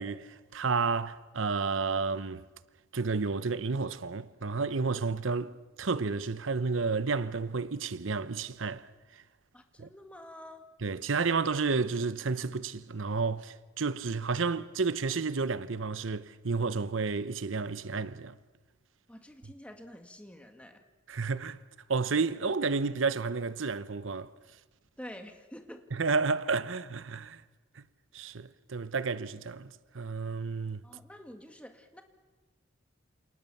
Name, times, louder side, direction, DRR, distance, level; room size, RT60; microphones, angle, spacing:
voice 1, 0.0-2.4 2.9-9.2 9.8-9.9 10.8-18.4 21.1-21.6 21.9-24.3 25.9-27.4 27.7-27.8 28.1-30.8, right 4 dB, 90° right, 0.8 m, -31 dB
voice 2, 9.5-10.7 19.1-20.8 25.0-25.8 30.8-32.0, equal, 5° left, 2.0 m, -48 dB
28.5 x 28.0 x 7.2 m
head